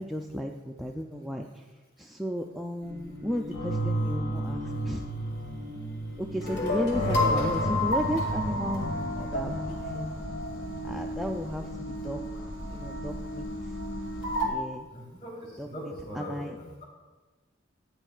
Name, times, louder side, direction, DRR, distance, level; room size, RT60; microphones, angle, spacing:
voice 1, 0.0-1.6 2.0-5.0 6.2-8.9 9.2-10.2 10.8-13.5 14.4-14.9 15.6-16.5, equal, ahead, 1 dB, 0.3 m, -34 dB
sound 1, 2.8-14.5, left 1 dB, 60° left, 1.6 m, -31 dB
voice 2, 7.1-7.4 7.8-7.9 14.9-16.5, right 1 dB, 30° left, -4 dB, 3.3 m, -37 dB
13.5 x 8.9 x 2.4 m, 1.2 s
head